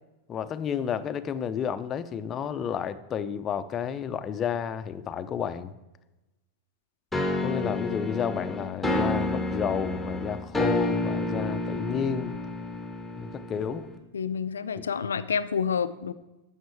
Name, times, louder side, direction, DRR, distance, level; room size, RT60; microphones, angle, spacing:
voice 1, 0.3-5.7 7.4-12.3 13.2-13.9, left 8 dB, 30° left, 11 dB, 0.6 m, -31 dB
sound 1, 7.1-14.0, left 2 dB, 5° left, 1.3 m, -29 dB
voice 2, 14.1-16.1, left 6 dB, 80° left, 13 dB, 0.4 m, -28 dB
10.5 x 7.3 x 3.4 m, 1.0 s
hypercardioid pair, 90°, 0 cm